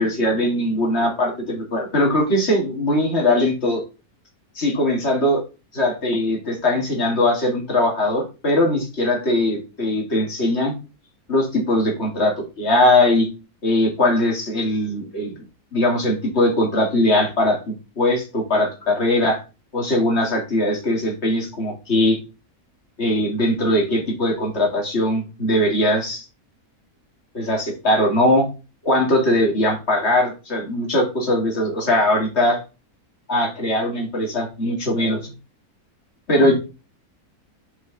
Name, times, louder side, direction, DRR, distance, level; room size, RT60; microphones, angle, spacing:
voice 1, 0.0-3.8 4.6-5.4 5.7-10.7 11.3-13.3 13.6-15.4 15.7-19.4 19.7-22.2 23.0-26.2 27.3-28.5 28.8-32.6 33.3-35.3 36.3-36.6, left 1 dB, 45° left, 0 dB, 2.5 m, -20 dB
5.8 x 5.8 x 4.0 m, 0.31 s
omnidirectional pair, 1.6 m